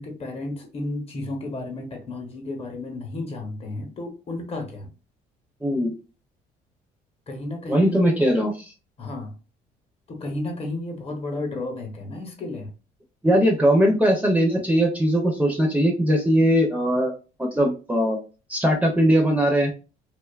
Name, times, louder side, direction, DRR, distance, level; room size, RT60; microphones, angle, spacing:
voice 1, 0.0-4.9 7.3-8.2 9.0-9.3 10.1-12.7, left 2 dB, 35° left, 3 dB, 0.9 m, -32 dB
voice 2, 5.6-5.9 7.7-8.5 13.2-17.1 17.4-18.2 18.5-19.7, equal, 10° right, 1 dB, 0.6 m, -20 dB
2.5 x 2.3 x 2.3 m, 0.33 s
cardioid pair, 110°, 17 cm